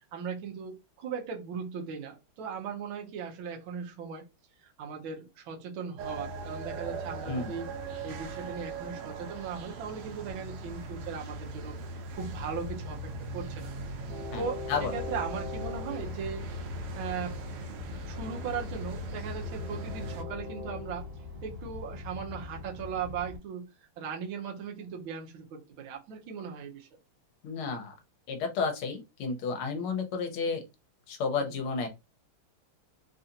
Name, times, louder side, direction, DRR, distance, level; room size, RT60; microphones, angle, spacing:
voice 1, 0.1-4.2 4.8-7.7 8.0-11.8 12.1-13.7 14.4-16.4 16.9-17.4 18.1-21.1 21.4-26.9 31.4-31.6, right 6 dB, 70° right, 1.6 m, -38 dB
sound 1, 6.0-20.2, right 2 dB, 85° right, 1.7 m, -40 dB
Train, 12.1-23.4, left 3 dB, 50° right, 1.8 m, -41 dB
voice 2, 27.4-28.0 28.3-30.6 31.1-31.9, left 5 dB, 85° left, 1.8 m, -31 dB
4.2 x 2.6 x 2.7 m
omnidirectional pair, 2.4 m